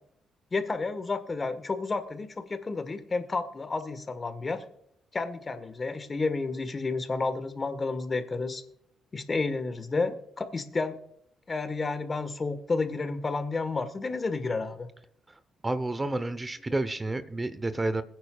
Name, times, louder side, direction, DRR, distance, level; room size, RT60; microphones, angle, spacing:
voice 1, 0.5-4.6 5.1-8.6 9.1-11.0 11.5-14.9, left 3 dB, 35° left, 11 dB, 1.5 m, -31 dB
voice 2, 15.6-18.0, right 2 dB, 25° right, 13 dB, 0.9 m, -30 dB
21.5 x 9.5 x 2.4 m, 0.71 s
hypercardioid pair, 45°, 0 cm